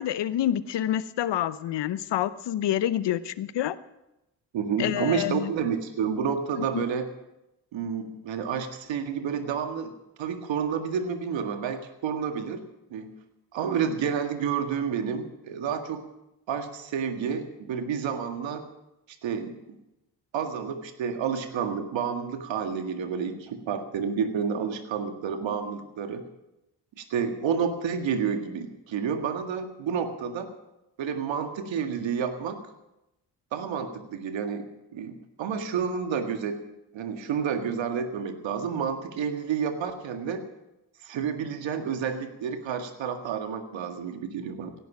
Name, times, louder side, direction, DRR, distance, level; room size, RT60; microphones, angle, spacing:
voice 1, 0.0-3.7 4.8-5.5 6.6-6.8, left 11 dB, 65° left, 15 dB, 0.9 m, -27 dB
voice 2, 4.5-7.1 7.7-9.9 10.2-12.6 12.9-13.2 13.5-16.0 16.5-18.6 19.2-19.6 20.3-26.2 27.0-30.5 31.0-32.6 33.5-36.6 36.9-40.4 41.0-44.7, right 7 dB, 75° right, 6 dB, 1.9 m, -30 dB
17.0 x 11.0 x 6.1 m, 0.92 s
hypercardioid pair, 45°, 46 cm